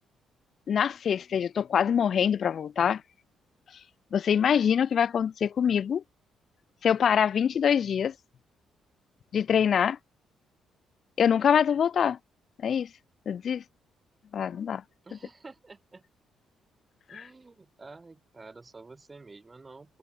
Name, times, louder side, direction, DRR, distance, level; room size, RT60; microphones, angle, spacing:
voice 1, 0.7-3.0 4.1-6.0 6.8-8.1 9.3-10.0 11.2-12.2 12.6-12.9 13.3-13.6 14.3-14.8, left 8 dB, 55° left, 0.4 m, -24 dB
voice 2, 15.0-16.1 17.1-20.0, right 3 dB, 25° right, 3.6 m, -49 dB
cardioid pair, 90°, 0 cm